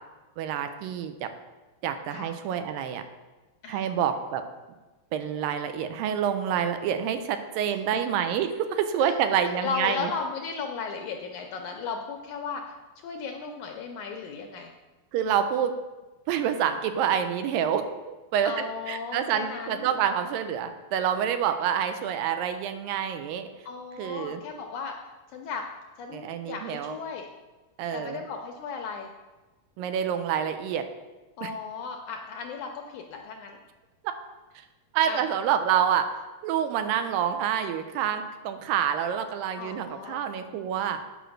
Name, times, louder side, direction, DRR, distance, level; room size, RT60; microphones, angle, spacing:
voice 1, 0.4-1.3 1.8-3.0 3.7-4.4 5.1-10.1 15.1-15.7 16.3-18.5 18.9-23.5 24.0-24.4 26.1-27.0 27.8-28.2 29.8-30.8 31.4-31.5 34.9-36.1 36.4-41.0, right 9 dB, 85° right, 8 dB, 2.3 m, -27 dB
voice 2, 7.7-8.0 9.0-9.2 9.4-12.7 13.0-14.7 18.5-19.9 23.7-25.0 25.3-25.6 26.0-27.3 27.9-29.1 31.4-33.6 35.1-35.2 39.6-40.2, left 5 dB, 80° left, 3 dB, 1.8 m, -35 dB
8.7 x 5.1 x 6.3 m, 1.2 s
omnidirectional pair, 4.1 m